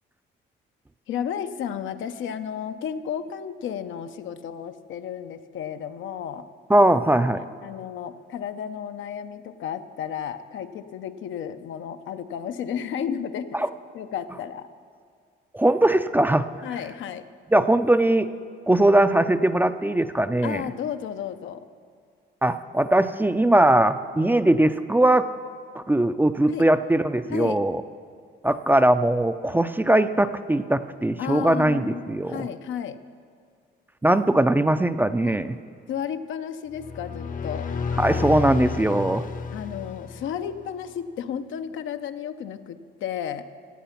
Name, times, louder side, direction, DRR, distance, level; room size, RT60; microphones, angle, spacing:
voice 1, 1.1-6.5 7.3-13.5 13.9-14.7 16.6-17.2 20.4-21.7 26.5-26.6 27.2-27.6 31.2-33.0 35.2-35.4 35.9-37.7 39.5-43.4, left 8 dB, 75° left, 9 dB, 0.7 m, -33 dB
voice 2, 6.7-7.4 13.5-13.7 15.5-16.5 17.5-18.3 18.7-20.7 22.4-25.3 25.8-27.8 28.4-32.5 34.0-35.6 38.0-39.3, right 1 dB, 10° right, 11 dB, 0.4 m, -20 dB
sound 1, 36.7-40.6, left 5 dB, 40° left, 0.7 m, -31 dB
15.5 x 8.4 x 5.8 m, 2.2 s
cardioid pair, 90°, 20 cm